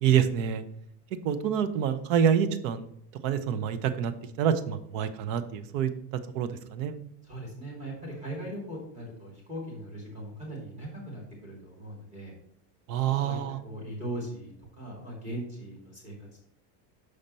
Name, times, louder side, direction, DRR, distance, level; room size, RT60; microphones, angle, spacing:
voice 1, 0.0-0.6 1.2-2.8 3.2-4.1 4.4-5.9 6.3-7.0 12.9-13.6, right 8 dB, 50° right, 11 dB, 0.7 m, -26 dB
voice 2, 7.2-12.3 13.2-16.3, right 1 dB, 15° right, -3 dB, 2.5 m, -39 dB
6.6 x 4.2 x 5.3 m, 0.71 s
cardioid pair, 175°, 49 cm